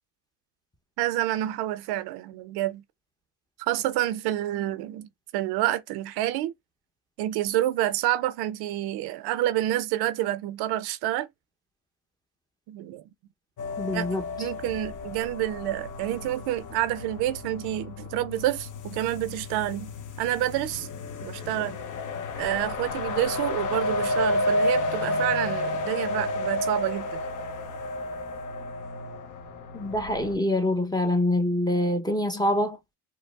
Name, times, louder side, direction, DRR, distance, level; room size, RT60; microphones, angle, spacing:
voice 1, 1.0-2.8 3.7-6.5 7.2-11.3 12.7-13.0 13.9-19.9 20.2-20.9 21.2-21.8 22.4-27.2, right 14 dB, 80° right, 0.5 m, -28 dB
sound 1, 13.6-30.4, left 2 dB, 50° left, 0.7 m, -31 dB
voice 2, 13.8-14.2 29.7-32.8, left 1 dB, 10° left, 0.7 m, -25 dB
4.6 x 2.0 x 2.3 m
supercardioid pair, 75°, 38 cm